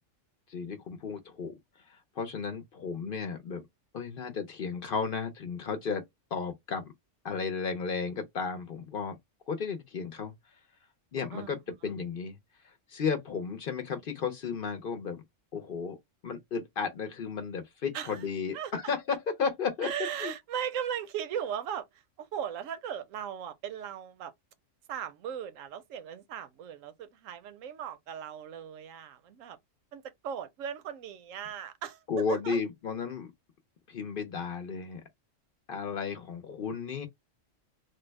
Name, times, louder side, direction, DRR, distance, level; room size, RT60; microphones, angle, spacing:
voice 1, 0.5-1.5 1.9-3.6 3.9-6.0 6.3-6.9 7.2-9.2 9.5-10.3 11.1-12.4 12.6-15.2 15.5-16.0 16.2-19.9 20.2-20.3 32.1-33.3 33.9-35.0 35.7-37.1, left 5 dB, 55° left, 0.7 m, -34 dB
voice 2, 19.8-21.9 22.2-24.3 24.9-29.6 29.9-32.0 32.3-32.6, right 9 dB, 85° right, 1.0 m, -37 dB
3.3 x 2.1 x 3.2 m
omnidirectional pair, 1.3 m